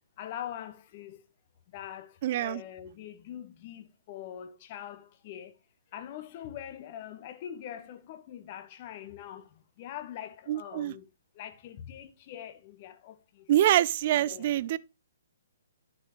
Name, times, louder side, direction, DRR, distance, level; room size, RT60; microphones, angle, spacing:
voice 1, 0.2-1.2 1.7-5.6 5.9-11.0 11.3-13.5 14.1-14.6, left 10 dB, 35° left, 1.2 m, -43 dB
voice 2, 2.2-2.6 10.5-10.9 13.5-14.8, right 12 dB, 40° right, 0.4 m, -25 dB
12.5 x 6.2 x 3.1 m
figure-of-eight pair, 125°, 0 cm